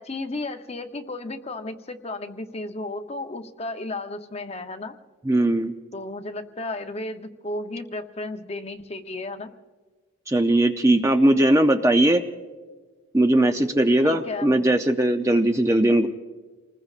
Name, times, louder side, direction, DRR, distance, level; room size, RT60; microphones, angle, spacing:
voice 1, 0.0-4.9 5.9-9.5 14.0-14.7, left 2 dB, 30° left, 7 dB, 0.7 m, -33 dB
voice 2, 5.3-5.7 10.3-12.2 13.1-16.1, right 1 dB, 15° right, 6 dB, 0.5 m, -19 dB
29.0 x 20.0 x 2.4 m, 1.4 s
head